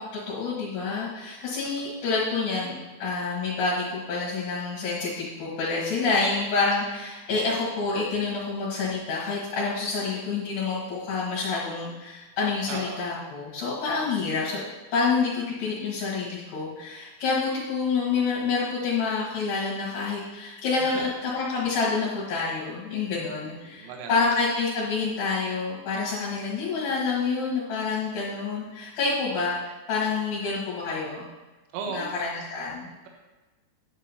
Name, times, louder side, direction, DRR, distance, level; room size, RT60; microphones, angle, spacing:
voice 1, 0.3-14.7 14.9-31.2 31.9-32.9, left 4 dB, 70° left, -8 dB, 3.3 m, -28 dB
voice 2, 12.7-13.1 20.8-21.0 23.1-24.3 31.7-32.1, right 5 dB, 85° right, 1 dB, 3.5 m, -37 dB
9.6 x 8.7 x 2.8 m, 1.2 s
omnidirectional pair, 5.5 m